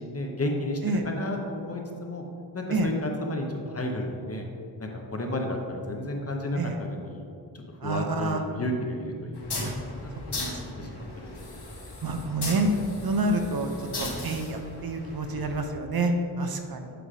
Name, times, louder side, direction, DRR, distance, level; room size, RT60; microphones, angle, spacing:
voice 1, 0.0-2.2 2.5-4.4 4.8-7.3 7.5-11.6, left 1 dB, 35° left, 1 dB, 0.8 m, -33 dB
voice 2, 7.8-8.4 9.6-9.7 10.4-11.1 12.0-12.7 13.0-16.9, right 2 dB, 60° right, 5 dB, 0.6 m, -28 dB
sound 1, 9.4-15.7, left 2 dB, 75° left, 1.3 m, -37 dB
7.9 x 3.3 x 4.9 m, 2.4 s
wide cardioid pair, 85°, 41 cm